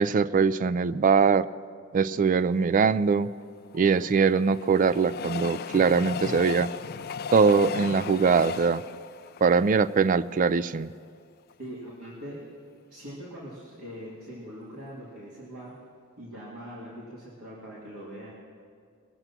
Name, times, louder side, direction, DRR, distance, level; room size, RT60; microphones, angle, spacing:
voice 1, 0.0-1.5 1.9-3.3 3.7-6.7 7.3-8.8 9.4-10.9, right 5 dB, 40° right, 15 dB, 0.3 m, -22 dB
Train, 3.4-10.7 11.2-11.3 11.5-11.6, left 6 dB, 45° left, 0.3 m, -36 dB
voice 2, 11.6-12.4 12.9-15.7 16.2-18.3, equal, 85° right, -7 dB, 2.6 m, -42 dB
22.0 x 8.0 x 5.9 m, 2.1 s
head